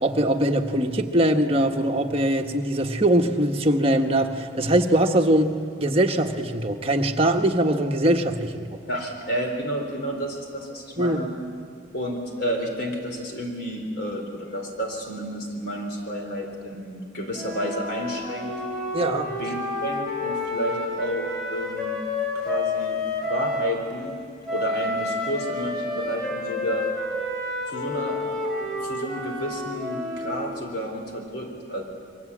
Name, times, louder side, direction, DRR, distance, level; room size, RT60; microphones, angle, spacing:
voice 1, 0.0-8.8 11.0-11.2 18.9-19.3, right 1 dB, 30° right, 3 dB, 1.4 m, -22 dB
voice 2, 8.9-11.3 11.9-18.5 19.4-21.9 22.3-24.2 24.5-26.9 27.7-28.2 28.6-31.8, equal, 55° left, 2 dB, 4.1 m, -31 dB
Wind instrument woodwind instrument, 17.3-23.7 24.5-30.5, left 2 dB, ahead, 6.0 m, -29 dB
28.5 x 23.5 x 8.7 m, 2.2 s
head